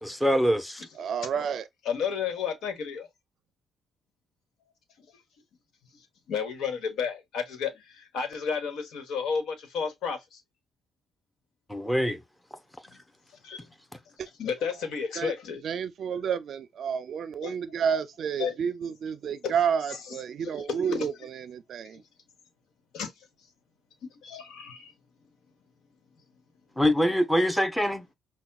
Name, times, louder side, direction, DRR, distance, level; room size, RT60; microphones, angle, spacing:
voice 1, 0.0-0.9 11.7-12.2 26.8-28.0, equal, 5° left, 0.8 m, -24 dB
voice 2, 1.0-1.7 15.2-15.3 15.6-22.0, right 7 dB, 60° right, 0.4 m, -30 dB
voice 3, 1.8-3.1 5.0-5.1 6.3-10.4 12.9-13.0 13.4-13.6 14.4-15.6 17.4-17.6 18.4-18.5 19.4-19.5 20.9-21.1 22.9-23.1 24.2-24.9, left 6 dB, 80° left, 1.2 m, -32 dB
5.7 x 2.2 x 2.3 m
cardioid pair, 90°, 0 cm